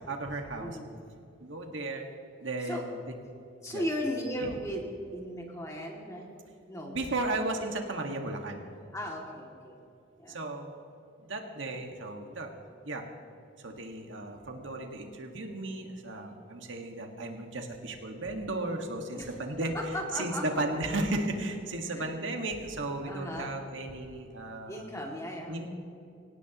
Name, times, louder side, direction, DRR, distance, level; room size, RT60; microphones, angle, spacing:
voice 1, 0.1-0.8 1.4-2.1 2.4-3.0 3.7-3.8 4.4-4.5 6.9-8.6 10.3-10.7 11.2-12.5 12.8-13.0 13.6-19.7 20.1-24.8 25.5-25.7, right 2 dB, 70° right, 3 dB, 1.8 m, -35 dB
voice 2, 3.6-4.8 5.1-6.3 6.7-6.9 8.9-9.8 10.2-10.3 19.1-19.3 19.7-20.6 21.8-22.2 23.1-23.6 24.7-25.6, equal, 15° left, -1 dB, 2.4 m, -36 dB
24.5 x 18.0 x 3.1 m, 2.7 s
head